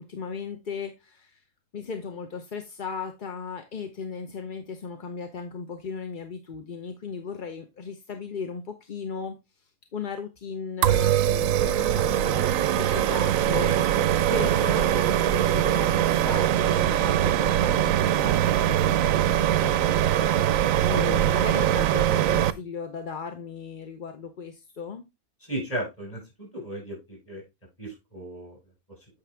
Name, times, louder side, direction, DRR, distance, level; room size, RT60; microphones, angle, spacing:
voice 1, 0.0-1.4 1.7-9.3 9.9-12.4 12.8-13.8 14.3-18.3 18.6-25.0, left 5 dB, 45° left, 0.8 m, -36 dB
sound 1, 10.8-22.5, right 11 dB, 70° right, 0.9 m, -22 dB
voice 2, 25.5-27.4 27.8-28.6, right 1 dB, 25° left, 4.9 m, -35 dB
8.6 x 5.4 x 3.4 m
omnidirectional pair, 1.5 m